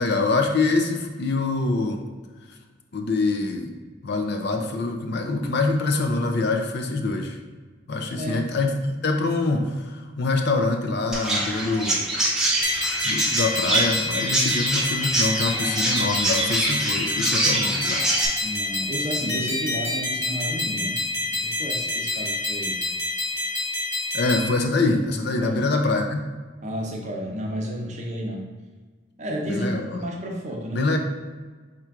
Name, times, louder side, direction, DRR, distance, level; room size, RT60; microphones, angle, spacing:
voice 1, 0.0-2.0 2.9-3.7 4.0-7.4 7.9-12.0 13.0-18.0 24.1-26.2 29.5-30.1 30.7-31.0, left 3 dB, 55° left, 5 dB, 0.5 m, -25 dB
voice 2, 8.1-8.5 18.4-21.0 21.3-22.8 25.4-25.7 26.6-28.5 29.2-31.0, equal, 35° right, -1 dB, 0.7 m, -31 dB
Chirp tweet, 11.1-18.3, right 2 dB, 5° right, 0.7 m, -25 dB
sound 1, 12.6-24.5, left 2 dB, 80° left, 1.3 m, -28 dB
4.4 x 2.5 x 4.5 m, 1.4 s
head